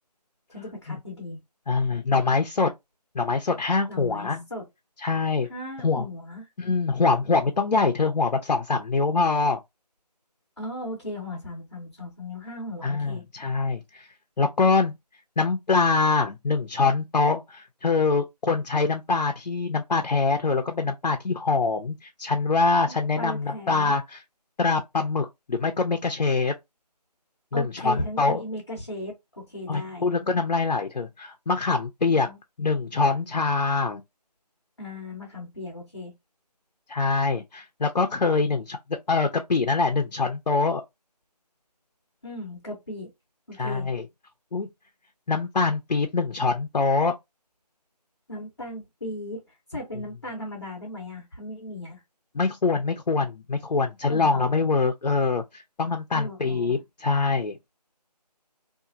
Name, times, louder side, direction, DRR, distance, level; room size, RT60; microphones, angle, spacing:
voice 1, 0.5-1.4 3.9-4.6 5.5-6.4 10.6-13.2 23.2-23.9 27.5-30.1 32.2-32.4 34.8-36.1 42.2-43.1 43.5-43.9 48.3-49.4 49.7-52.0 54.1-54.5 56.1-56.7, left 1 dB, 40° left, 0.9 m, -36 dB
voice 2, 1.7-2.7 3.1-4.4 5.0-5.5 5.8-6.1 6.6-9.6 12.8-14.1 14.4-14.9 15.4-24.2 24.6-26.5 27.5-28.4 29.7-32.3 32.6-34.0 36.9-38.8 39.1-40.8 43.6-44.1 44.5-44.7 45.3-47.1 52.3-57.6, left 4 dB, 85° left, 0.6 m, -24 dB
2.8 x 2.4 x 2.4 m
figure-of-eight pair, 180°, 21 cm